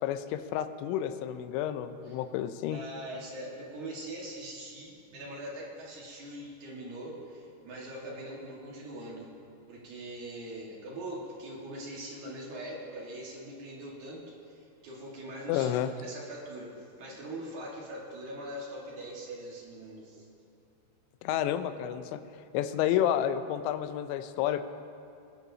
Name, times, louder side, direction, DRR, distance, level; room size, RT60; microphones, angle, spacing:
voice 1, 0.0-2.8 15.5-15.9 21.2-22.2 22.5-24.6, left 11 dB, 85° left, 10 dB, 2.8 m, -30 dB
voice 2, 2.7-9.3 9.7-15.7 16.0-20.3, right 1 dB, 55° right, -4 dB, 2.5 m, -42 dB
22.0 x 10.0 x 2.7 m, 2.6 s
omnidirectional pair, 5.1 m